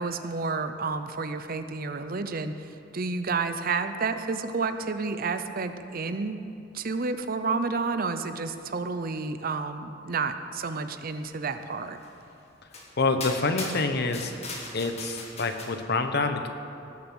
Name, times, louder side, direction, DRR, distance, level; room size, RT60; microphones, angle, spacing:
voice 1, 0.0-6.4 6.7-12.0, right 4 dB, 50° right, 9 dB, 0.6 m, -30 dB
sound 1, 12.0-12.1 12.7-12.9 13.2-15.7, left 2 dB, 35° left, 1.9 m, -38 dB
voice 2, 13.0-14.3 14.7-16.5, left 3 dB, 55° left, 7 dB, 0.9 m, -27 dB
18.5 x 7.0 x 6.2 m, 2.6 s
head